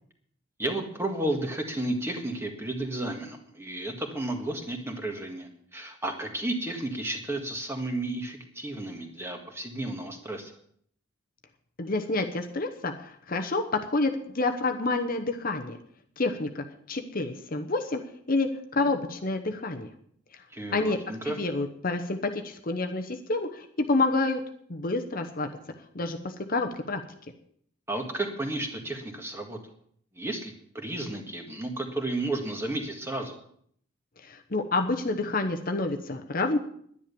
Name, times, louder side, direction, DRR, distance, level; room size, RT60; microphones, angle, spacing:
voice 1, 0.6-10.5 20.5-21.4 27.9-29.6 30.1-33.4, right 2 dB, 10° right, 3 dB, 1.7 m, -32 dB
voice 2, 11.8-15.8 16.2-18.0 18.3-19.9 20.7-21.0 21.2-24.4 24.7-25.5 25.9-27.0 34.2-36.6, left 3 dB, 40° left, 6 dB, 0.9 m, -28 dB
11.0 x 10.5 x 6.9 m, 0.64 s
head